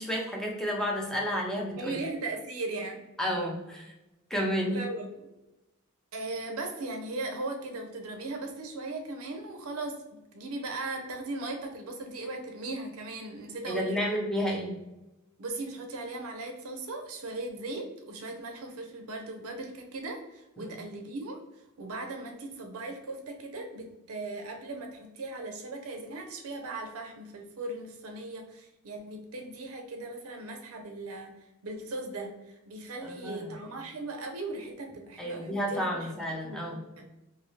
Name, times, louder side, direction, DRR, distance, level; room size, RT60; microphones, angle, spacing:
voice 1, 0.0-2.0 3.2-3.9 4.3-4.9 13.7-14.8 20.6-20.7 33.0-33.5 35.2-36.8, equal, ahead, -1 dB, 0.5 m, -31 dB
voice 2, 1.8-3.0 4.7-5.2 6.1-10.0 10.3-14.2 15.4-37.1, right 2 dB, 75° right, 4 dB, 0.6 m, -38 dB
2.7 x 2.6 x 3.0 m, 0.98 s
head